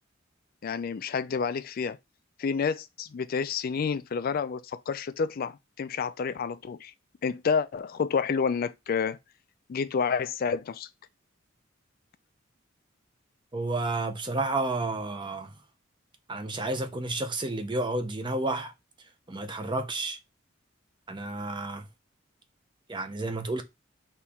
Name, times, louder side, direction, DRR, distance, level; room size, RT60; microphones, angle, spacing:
voice 1, 0.6-2.0 2.4-6.9 7.2-9.2 9.7-10.9, left 6 dB, 50° left, 0.4 m, -29 dB
voice 2, 13.5-15.6 16.3-18.7 19.3-20.2 21.1-21.9 22.9-23.6, right 2 dB, 25° right, 0.6 m, -31 dB
4.3 x 2.9 x 3.5 m
head